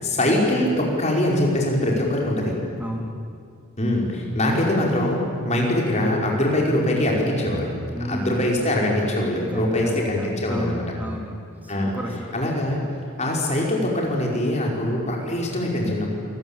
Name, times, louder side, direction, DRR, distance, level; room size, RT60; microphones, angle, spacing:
voice 1, 0.0-2.6 3.8-7.7 8.0-10.8 11.7-12.0 12.3-12.8 13.2-16.1, left 1 dB, 30° left, -1 dB, 5.1 m, -23 dB
voice 2, 2.8-3.1 7.9-8.5 9.4-11.3 11.6-12.4, equal, 10° right, 1 dB, 3.0 m, -31 dB
27.5 x 20.5 x 8.9 m, 2.3 s
head